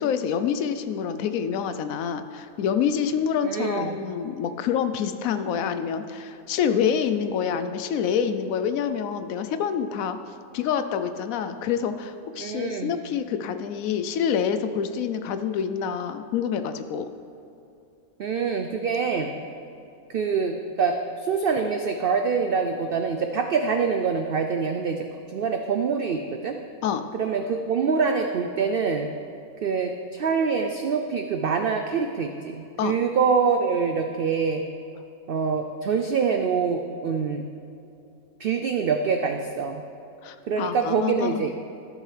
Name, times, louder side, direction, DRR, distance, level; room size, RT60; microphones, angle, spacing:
voice 1, 0.0-10.2 10.5-17.1 26.8-27.0 32.8-33.0 40.2-41.4, left 7 dB, 75° left, 10 dB, 1.0 m, -27 dB
voice 2, 3.4-4.0 12.4-12.9 18.2-19.4 20.1-26.6 27.1-29.1 29.6-34.6 35.3-37.5 38.4-39.8 40.5-41.5, right 5 dB, 80° right, 5 dB, 0.5 m, -25 dB
14.0 x 6.4 x 3.3 m, 2.7 s
omnidirectional pair, 1.5 m